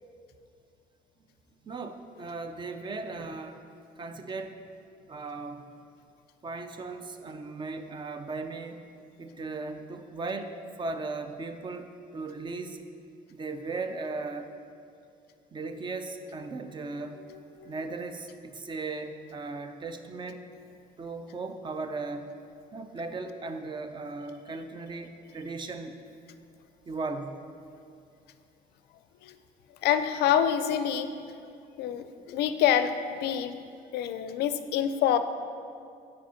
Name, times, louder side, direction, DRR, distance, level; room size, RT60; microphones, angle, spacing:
voice 1, 1.6-3.6 4.0-4.6 5.1-5.8 6.4-8.8 9.2-12.8 13.3-14.5 15.5-17.2 17.6-20.4 21.0-22.3 22.7-26.0 26.9-27.4, right 3 dB, 30° right, 8 dB, 0.4 m, -37 dB
voice 2, 17.3-17.7 29.2-29.4 29.8-31.1 31.8-33.6 33.9-35.2, left 9 dB, 75° left, 10 dB, 0.4 m, -26 dB
4.9 x 4.7 x 5.6 m, 2.4 s
cardioid pair, 110°, 17 cm